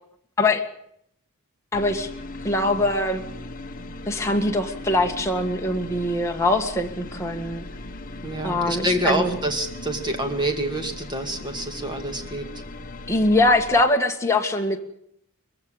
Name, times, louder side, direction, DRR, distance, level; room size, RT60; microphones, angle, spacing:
sound 1, 1.7-13.8, left 2 dB, 40° left, 1.4 m, -38 dB
voice 1, 1.7-2.1 2.4-3.2 4.1-7.7 8.4-9.4 13.1-14.8, left 2 dB, 15° left, 2 dB, 1.8 m, -22 dB
voice 2, 8.2-12.5, right 1 dB, 20° right, 5 dB, 2.3 m, -27 dB
22.0 x 15.5 x 8.7 m, 0.73 s
head